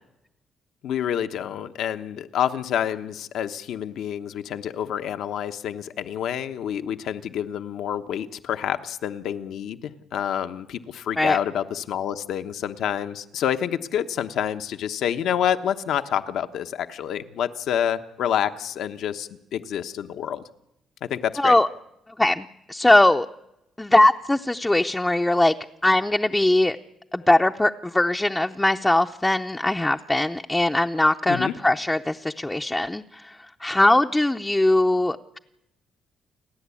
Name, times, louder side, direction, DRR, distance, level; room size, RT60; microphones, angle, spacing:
voice 1, 0.8-20.4 21.0-21.6 31.3-31.6, left 9 dB, 75° left, 9 dB, 1.0 m, -28 dB
voice 2, 21.4-21.7 22.2-23.3 23.8-25.5 25.8-26.8 27.1-35.4, left 1 dB, 10° left, 4 dB, 0.6 m, -21 dB
29.0 x 10.5 x 8.5 m, 0.87 s
cardioid pair, 90°, 0 cm